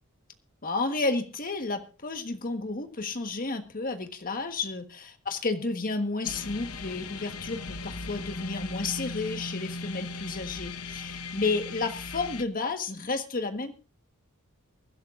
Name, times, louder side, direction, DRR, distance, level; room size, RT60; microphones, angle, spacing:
voice 1, 0.6-13.8, left 3 dB, 40° left, 7 dB, 1.4 m, -31 dB
sound 1, 6.2-12.4, left 3 dB, 75° left, 0.9 m, -38 dB
23.5 x 11.5 x 2.5 m, 0.34 s
head